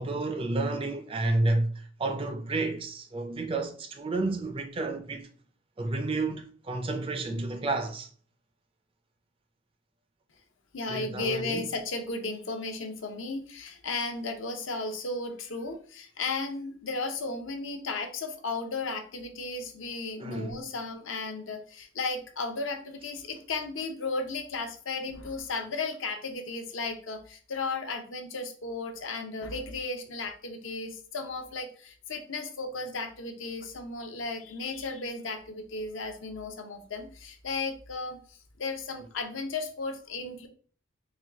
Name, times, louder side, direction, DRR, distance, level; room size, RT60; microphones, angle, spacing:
voice 1, 0.0-5.3 5.8-8.1 10.9-11.7 20.2-20.6, right 2 dB, 25° right, 0.4 m, -30 dB
voice 2, 10.7-40.5, left 3 dB, 70° left, 0.7 m, -35 dB
4.5 x 2.3 x 3.5 m
head